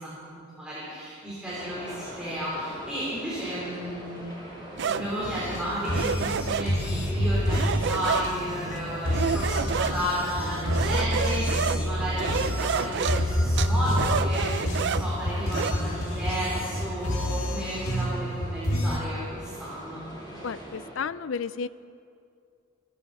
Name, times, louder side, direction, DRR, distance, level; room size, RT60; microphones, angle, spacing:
voice 1, 0.0-4.3 4.8-20.1, equal, 5° right, -10 dB, 3.8 m, -33 dB
sound 1, 1.5-20.9, equal, 20° left, 3.5 m, -43 dB
sound 2, 4.8-15.7, right 6 dB, 55° right, 0.4 m, -31 dB
sound 3, 5.2-19.0, left 1 dB, 80° left, 1.8 m, -28 dB
voice 2, 20.4-21.7, left 6 dB, 60° left, 16 dB, 0.4 m, -32 dB
28.0 x 11.0 x 4.2 m, 2.4 s
head